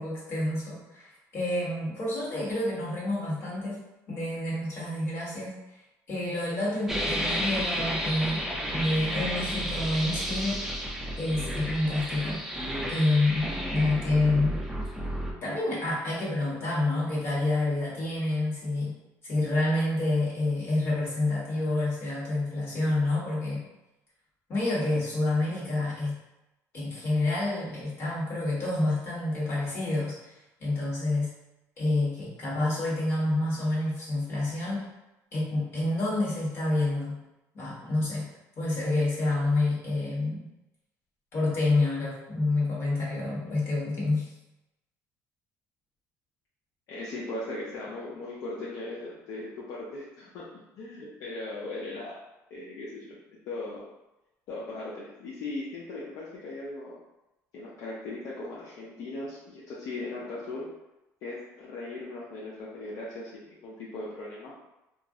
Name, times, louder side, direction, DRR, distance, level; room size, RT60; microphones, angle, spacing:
voice 1, 0.0-3.8 4.1-5.5 6.1-8.4 8.7-10.9 11.2-12.4 12.9-14.6 15.4-18.9 19.2-23.6 24.5-26.1 26.7-31.3 31.8-34.8 35.3-37.2 37.5-38.3 38.6-40.5 41.3-44.3, left 2 dB, 45° left, -6 dB, 1.2 m, -28 dB
sound 1, 6.9-15.3, equal, 5° right, 0.4 m, -32 dB
voice 2, 46.9-50.5 50.8-52.2 52.5-53.2 53.5-53.8 54.5-57.0 57.5-60.7 61.2-64.5, left 2 dB, 65° left, -6 dB, 0.5 m, -38 dB
2.4 x 2.0 x 3.6 m, 0.97 s
cardioid pair, 135°, 6 cm